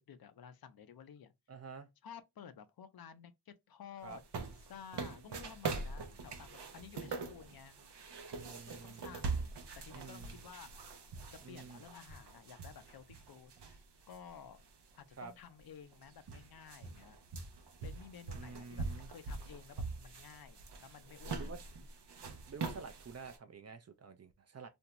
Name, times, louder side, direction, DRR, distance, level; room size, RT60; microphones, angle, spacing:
voice 1, 0.0-1.3 2.0-4.2 4.7-7.8 8.7-9.5 9.8-10.7 11.5-14.7 15.0-17.2 17.8-21.5, left 7 dB, 60° left, 0.5 m, -53 dB
voice 2, 1.5-1.9 4.0-4.2 8.3-9.0 9.9-10.4 11.4-11.8 15.2-15.3 18.3-19.1 21.4-21.6 22.5-24.7, right 5 dB, 40° right, 0.5 m, -49 dB
sound 1, 4.1-14.2 14.6-14.7 15.6-15.7 15.9-23.4, right 4 dB, 80° right, 0.7 m, -43 dB
2.5 x 2.2 x 2.8 m
cardioid pair, 40°, 41 cm